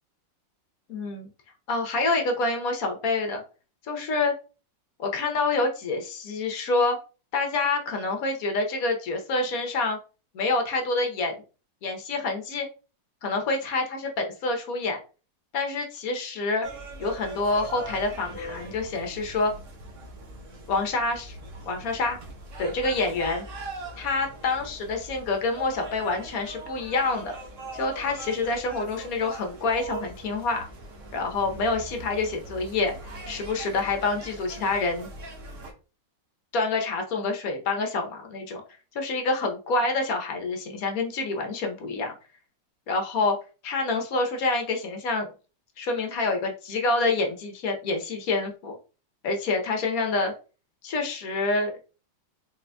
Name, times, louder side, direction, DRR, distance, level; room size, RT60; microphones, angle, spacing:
voice 1, 0.9-1.3 1.7-3.4 3.9-4.3 5.0-7.0 7.3-10.0 10.3-11.4 11.8-12.7 13.2-15.0 15.5-16.7 17.0-19.5 20.7-21.4 21.7-22.2 22.6-23.4 24.0-27.3 27.7-30.6 31.1-32.9 33.3-35.1 36.5-38.6 38.9-42.1 42.9-43.4 43.6-45.3 45.8-48.8 49.2-50.3 50.8-51.7, left 3 dB, 60° left, 3 dB, 1.1 m, -27 dB
sound 1, 16.6-35.7, right 2 dB, 50° right, 1.0 m, -41 dB
4.3 x 3.8 x 2.2 m, 0.34 s
omnidirectional pair, 2.1 m